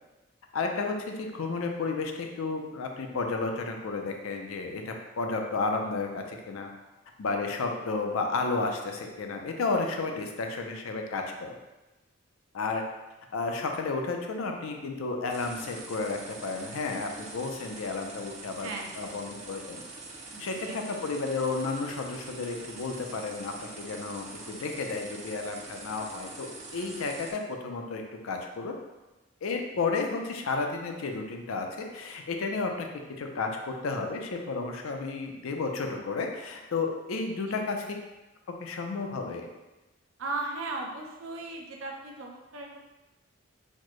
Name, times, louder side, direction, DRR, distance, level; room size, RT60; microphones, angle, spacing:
voice 1, 0.5-6.7 7.2-11.6 12.5-12.8 13.3-18.7 19.0-19.8 20.4-28.7 29.4-32.9 33.2-33.5 33.8-37.8 38.6-39.5, left 3 dB, 85° left, 3 dB, 0.5 m, -32 dB
sound 1, 15.3-27.3, right 3 dB, 30° right, 0.4 m, -44 dB
voice 2, 18.6-19.2 20.3-20.8 37.5-37.6 40.2-42.8, right 3 dB, 80° right, 0 dB, 0.6 m, -37 dB
4.2 x 2.1 x 3.0 m, 1.1 s
head